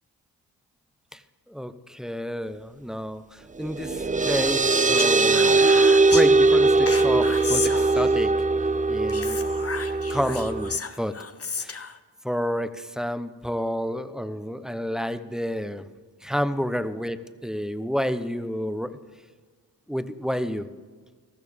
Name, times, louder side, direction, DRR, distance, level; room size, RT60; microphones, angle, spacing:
voice 1, 1.5-5.6 6.1-8.3 8.9-9.4 10.1-11.1 11.6-11.8 12.2-15.9 16.2-19.0 19.9-20.7, equal, ahead, 11 dB, 0.9 m, -29 dB
sound 1, 3.6-10.8, right 3 dB, 15° right, 0.5 m, -20 dB
Speech, 4.7-6.3 6.9-8.3 9.1-12.0, left 5 dB, 30° left, 0.9 m, -33 dB
14.0 x 13.5 x 3.5 m, 1.5 s
supercardioid pair, 45°, 46 cm